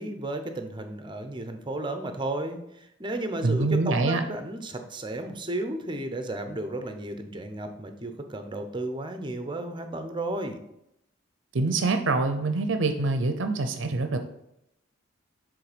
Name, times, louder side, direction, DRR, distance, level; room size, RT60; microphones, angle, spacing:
voice 1, 0.0-10.6, right 1 dB, 25° right, 7 dB, 0.7 m, -33 dB
voice 2, 3.4-4.2 11.5-14.2, right 3 dB, 65° right, 7 dB, 0.6 m, -25 dB
7.6 x 3.7 x 5.0 m, 0.81 s
head